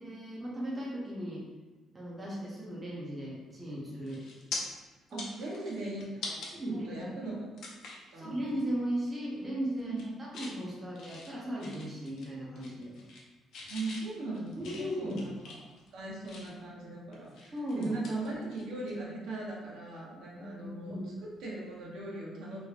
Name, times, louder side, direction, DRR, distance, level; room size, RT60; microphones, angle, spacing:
voice 1, 0.0-1.4 1.9-4.2 5.1-5.2 6.5-7.0 8.1-9.9 10.2-12.9 14.6-15.2 17.5-17.9 20.4-21.0, equal, 15° right, -4 dB, 0.6 m, -37 dB
sound 1, 3.5-3.7 4.1-4.6 5.0-6.5 7.0-7.1 7.6-8.1 8.5-8.7 9.0-9.4 9.8-10.6 11.0-12.3 12.6-13.3 13.5-16.7 17.1-19.0 19.2-19.4 21.3-21.5, left 3 dB, 70° left, 0.6 m, -44 dB
voice 2, 5.1-7.5 8.1-8.4 9.8-10.0 13.7-15.5 15.9-22.6, right 2 dB, 75° right, -4 dB, 0.8 m, -39 dB
3.2 x 2.9 x 2.4 m, 1.2 s
cardioid pair, 140°, 0 cm